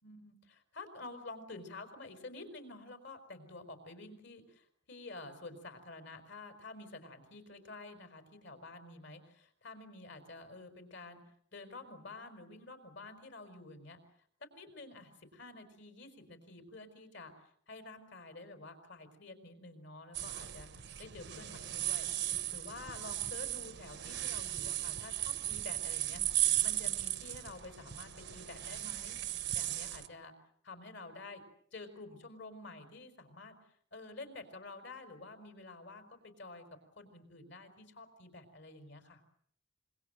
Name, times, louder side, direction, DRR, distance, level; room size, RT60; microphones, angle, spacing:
voice 1, 0.0-11.2 11.5-14.0 14.4-29.2 29.5-30.3 30.6-31.4 31.7-33.6 33.9-39.2, left 2 dB, 60° left, 7 dB, 5.0 m, -50 dB
sound 1, 20.1-30.1, right 13 dB, 55° right, 1.2 m, -36 dB
26.0 x 23.0 x 7.7 m, 0.63 s
head